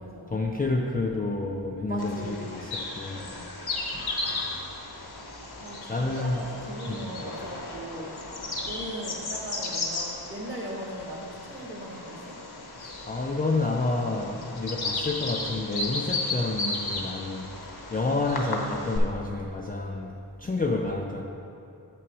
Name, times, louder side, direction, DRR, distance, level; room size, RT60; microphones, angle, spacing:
voice 1, 0.3-3.3 3.9-4.6 5.9-6.5 6.9-7.2 12.8-21.2, left 2 dB, 20° left, 0 dB, 0.4 m, -30 dB
voice 2, 1.8-2.4 3.1-3.4 5.6-8.1 8.6-12.3, equal, 30° right, -2 dB, 1.5 m, -38 dB
Bird vocalization bird call bird song, 2.0-19.0, left 2 dB, 60° left, 1.0 m, -35 dB
7.0 x 6.1 x 4.7 m, 2.8 s
wide cardioid pair, 90°, 43 cm